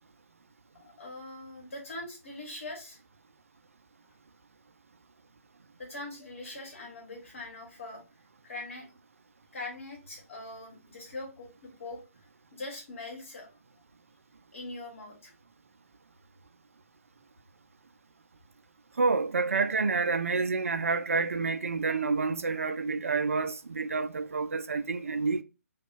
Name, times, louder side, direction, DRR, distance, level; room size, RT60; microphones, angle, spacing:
voice 1, 0.8-3.0 5.8-8.0 8.4-8.9 9.5-12.0 12.5-13.5 14.5-15.3, left 2 dB, 55° left, 1.5 m, -42 dB
voice 2, 19.0-25.4, right 4 dB, 65° right, 0.3 m, -28 dB
2.7 x 2.3 x 2.4 m
figure-of-eight pair, 140°, 8 cm